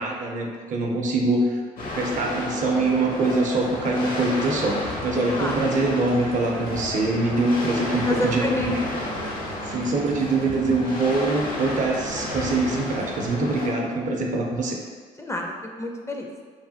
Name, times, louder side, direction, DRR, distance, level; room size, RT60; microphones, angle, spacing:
voice 1, 0.0-1.6 1.9-9.0 9.6-14.8, right 2 dB, 55° right, 1 dB, 0.5 m, -24 dB
sound 1, 1.8-13.7, left 1 dB, 65° left, 0.7 m, -32 dB
sound 2, 3.5-13.3, equal, 90° right, 0.7 m, -40 dB
voice 2, 8.1-8.8 15.2-16.3, left 1 dB, 20° left, 1 dB, 0.4 m, -28 dB
3.1 x 2.1 x 2.7 m, 1.5 s
supercardioid pair, 55°, 16 cm